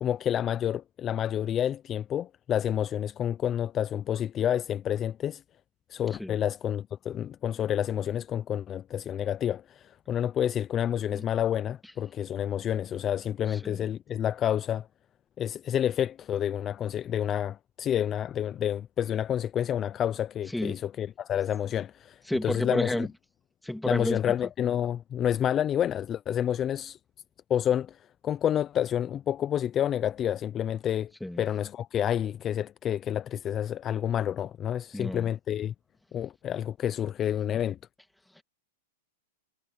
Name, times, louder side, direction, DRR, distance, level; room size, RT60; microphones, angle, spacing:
voice 1, 0.0-5.4 5.9-14.9 15.4-23.1 23.8-27.0 27.5-31.1 31.4-35.7 36.1-37.8, left 10 dB, 25° left, 0.6 m, -29 dB
voice 2, 22.3-23.1 23.6-24.2 31.2-31.4 34.9-35.3 38.4-38.5, left 1 dB, 5° left, 2.4 m, -30 dB
hypercardioid pair, 135°, 0 cm